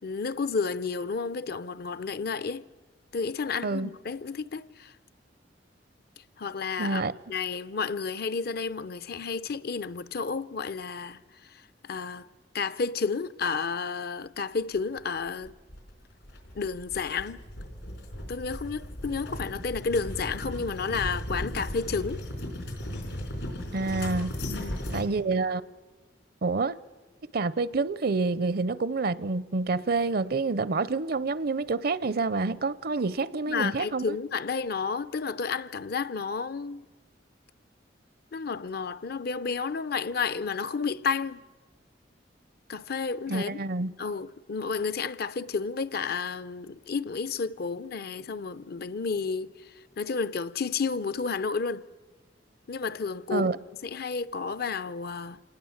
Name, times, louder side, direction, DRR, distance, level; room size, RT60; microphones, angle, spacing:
voice 1, 0.0-2.7 3.1-4.9 6.4-7.0 7.3-12.3 12.5-15.5 16.5-17.4 18.3-22.2 24.5-24.9 33.5-36.9 38.3-41.4 42.7-43.6 44.0-51.8 52.7-53.5 53.8-55.4, left 5 dB, 60° left, 0.6 m, -31 dB
voice 2, 6.8-7.1 23.7-24.4 24.9-25.6 26.4-26.8 27.3-34.2 43.3-43.9 53.3-53.6, right 3 dB, 55° right, 0.6 m, -28 dB
sound 1, 15.4-25.1, left 1 dB, 80° left, 4.7 m, -36 dB
27.0 x 19.5 x 7.2 m
head